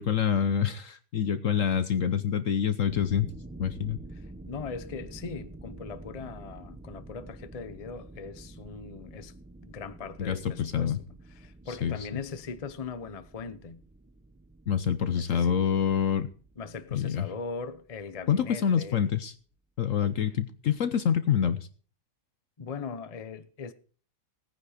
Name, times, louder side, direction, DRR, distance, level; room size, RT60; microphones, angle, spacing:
voice 1, 0.0-3.3 3.6-4.0 10.2-11.0 11.8-11.9 14.7-16.3 16.9-17.3 18.3-19.3 19.8-21.7, left 8 dB, 55° left, 1.1 m, -26 dB
sound 1, 2.9-18.6, right 2 dB, 15° right, 0.4 m, -48 dB
voice 2, 4.5-9.3 9.6-11.0 11.3-13.8 15.1-15.6 16.6-19.0 22.6-23.7, left 5 dB, 30° left, 0.8 m, -40 dB
17.5 x 10.0 x 5.0 m
omnidirectional pair, 1.8 m